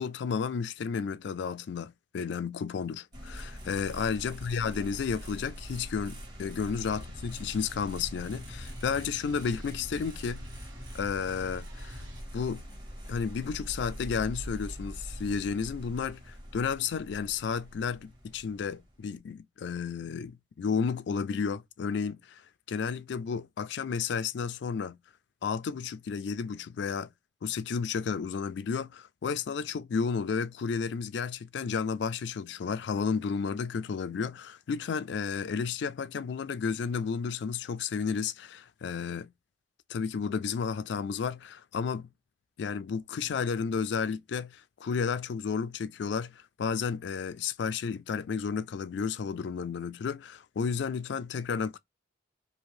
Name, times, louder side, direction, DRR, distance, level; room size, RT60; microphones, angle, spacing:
voice 1, 0.0-10.4 10.9-12.0 12.3-12.6 13.1-22.4 22.7-25.0 25.4-27.1 27.4-39.3 39.9-42.1 42.6-51.8, left 6 dB, 60° left, 0.3 m, -32 dB
sound 1, 3.1-19.2, equal, 20° right, 1.2 m, -43 dB
sound 2, 6.9-12.2, left 1 dB, 75° right, 1.7 m, -48 dB
2.7 x 2.5 x 3.1 m
head